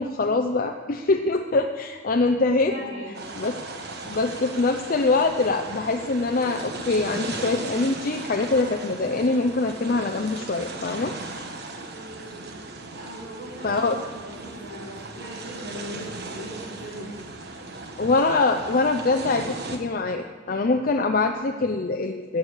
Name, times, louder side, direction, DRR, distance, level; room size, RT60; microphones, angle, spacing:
voice 1, 0.0-2.7 3.4-3.6 4.0-11.1 13.6-14.0 18.0-22.4, left 3 dB, 45° left, 3 dB, 0.6 m, -24 dB
voice 2, 2.5-3.2 11.8-12.5 12.9-17.5, equal, 90° right, -9 dB, 3.6 m, -39 dB
sound 1, 3.1-19.8, right 2 dB, 55° right, 1.3 m, -37 dB
16.5 x 6.9 x 6.4 m, 1.4 s
head